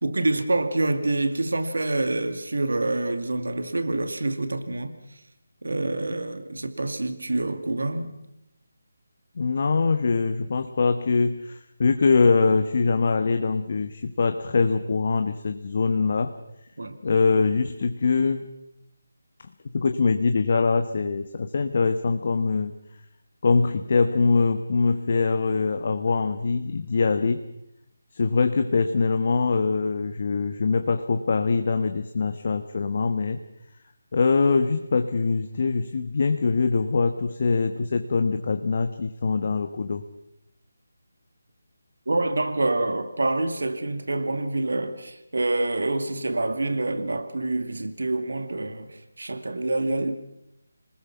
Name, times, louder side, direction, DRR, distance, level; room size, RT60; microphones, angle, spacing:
voice 1, 0.0-5.0 5.6-8.2 16.8-17.0 42.1-50.1, right 2 dB, 75° right, 2.3 m, -26 dB
voice 2, 9.4-16.3 17.0-18.5 19.6-22.7 23.4-27.4 28.1-33.4 34.1-40.0, left 4 dB, 50° left, 1.2 m, -23 dB
27.5 x 20.0 x 5.9 m
figure-of-eight pair, 160°, 0 cm